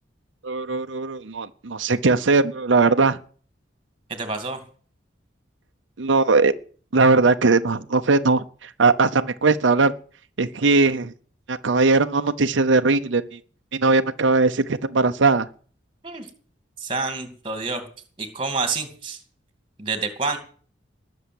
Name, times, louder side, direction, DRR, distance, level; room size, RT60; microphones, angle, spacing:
voice 1, 0.4-3.2 6.0-6.5 6.9-9.9 10.4-11.1 11.5-13.4 13.7-15.5, right 3 dB, 85° right, 8 dB, 0.8 m, -19 dB
voice 2, 4.1-4.6 16.0-16.3 16.8-17.9 18.2-19.2 19.8-20.4, right 4 dB, 25° right, 8 dB, 2.5 m, -28 dB
20.0 x 7.1 x 7.8 m, 0.43 s
head